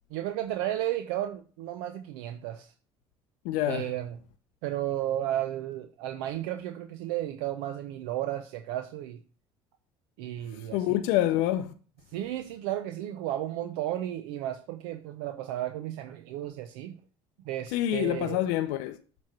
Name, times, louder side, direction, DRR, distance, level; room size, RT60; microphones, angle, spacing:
voice 1, 0.1-2.7 3.7-4.1 4.6-9.2 10.2-11.0 12.1-17.0 17.4-18.4, right 13 dB, 85° right, 0.6 m, -33 dB
voice 2, 3.4-3.9 10.5-11.7 17.7-19.0, left 13 dB, 80° left, 0.5 m, -27 dB
7.4 x 3.1 x 5.8 m
supercardioid pair, 90°, 13 cm